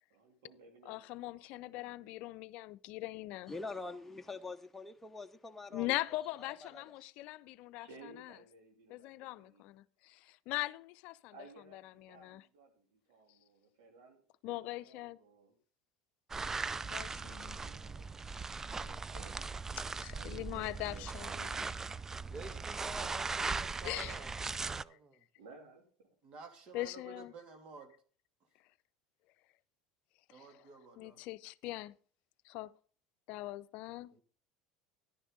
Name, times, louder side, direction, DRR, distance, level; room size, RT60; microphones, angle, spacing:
voice 1, 0.1-2.2 7.8-9.7 11.3-14.2 14.5-15.6 16.4-18.0 18.7-19.4 20.1-21.7 22.3-22.6 25.4-26.1, right 3 dB, 75° right, 3.1 m, -58 dB
voice 2, 0.9-3.5 5.7-8.3 8.9-11.3 11.7-12.4 14.4-15.2 16.9-17.6 20.0-21.6 23.8-24.2 26.7-27.3 30.3-30.5 31.0-32.0 32.4-32.7 33.3-34.1, left 18 dB, 60° left, 0.5 m, -41 dB
voice 3, 3.5-5.9 6.6-6.8, left 3 dB, 10° left, 0.9 m, -44 dB
sound 1, 16.3-24.8, right 4 dB, 20° right, 0.4 m, -39 dB
voice 4, 22.3-25.3, right 3 dB, 35° right, 1.7 m, -49 dB
voice 5, 26.2-27.9 30.3-31.2, right 4 dB, 50° right, 2.8 m, -52 dB
11.0 x 10.0 x 4.1 m
hypercardioid pair, 80°, 2 cm